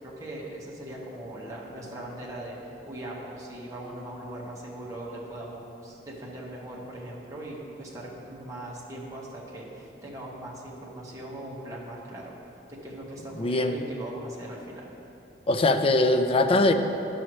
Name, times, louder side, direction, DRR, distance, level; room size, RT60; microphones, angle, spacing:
voice 1, 0.0-2.6 2.8-12.3 12.7-14.9, right 1 dB, 20° right, -5 dB, 1.2 m, -40 dB
voice 2, 13.4-13.8 15.5-16.7, left 2 dB, 30° left, 8 dB, 0.4 m, -21 dB
11.0 x 6.2 x 3.1 m, 2.9 s
head